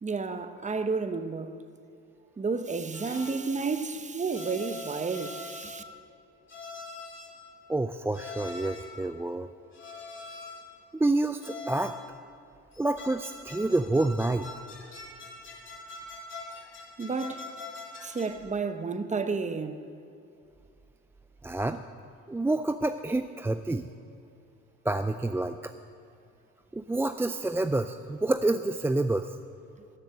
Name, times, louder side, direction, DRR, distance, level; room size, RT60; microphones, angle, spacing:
voice 1, 0.0-1.5 2.4-5.8 17.0-17.5 18.0-19.9, right 4 dB, 25° right, 0.9 m, -31 dB
sound 1, 2.9-3.5 4.3-5.9 6.5-7.4 8.1-9.0 9.7-10.7 11.4-12.1 12.7-18.5, left 3 dB, 40° left, 3.2 m, -44 dB
voice 2, 7.7-9.5 11.0-11.9 12.8-14.6 21.4-21.8 22.3-23.9 24.9-25.7 26.7-29.3, right 2 dB, 10° right, 0.3 m, -28 dB
14.0 x 6.6 x 9.9 m
cardioid pair, 90°, 30 cm